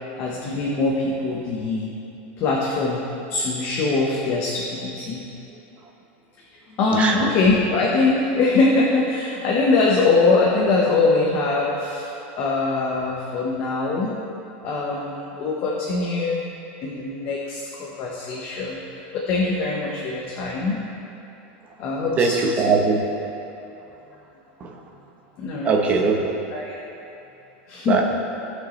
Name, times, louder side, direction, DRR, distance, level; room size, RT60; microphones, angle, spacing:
voice 1, 0.2-1.9 2.4-3.0 3.3-5.2 6.7-12.1 12.4-14.2 14.6-16.4 16.8-18.8 19.1-20.8 21.8-22.4 25.4-25.8 26.5-26.8 27.7-28.0, left 3 dB, 35° left, -3 dB, 1.1 m, -22 dB
voice 2, 22.2-23.0 24.6-24.7 25.6-26.3 27.9-28.0, right 4 dB, 20° right, 1 dB, 0.9 m, -20 dB
18.0 x 6.3 x 3.2 m, 2.9 s
supercardioid pair, 165°, 6 cm